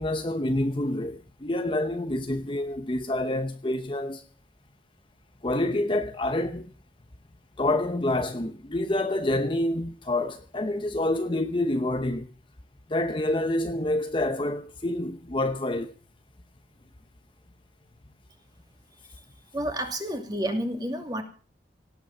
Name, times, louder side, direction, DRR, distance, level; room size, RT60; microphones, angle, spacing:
voice 1, 0.0-4.2 5.4-6.7 7.6-12.3 12.9-15.9, left 1 dB, 25° left, 0.8 m, -27 dB
voice 2, 19.5-21.2, right 1 dB, 20° right, 2.4 m, -30 dB
18.0 x 8.4 x 7.1 m
head